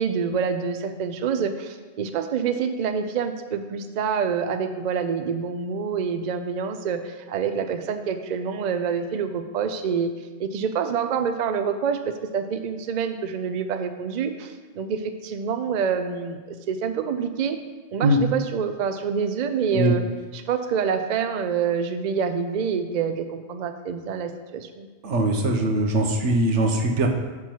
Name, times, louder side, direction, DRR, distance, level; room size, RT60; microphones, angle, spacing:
voice 1, 0.0-10.1 10.4-17.6 17.9-20.0 20.3-24.9, right 6 dB, 55° right, 8 dB, 0.5 m, -27 dB
voice 2, 25.0-27.1, right 1 dB, 90° right, 3 dB, 1.2 m, -21 dB
7.2 x 6.1 x 4.5 m, 1.3 s
omnidirectional pair, 1.2 m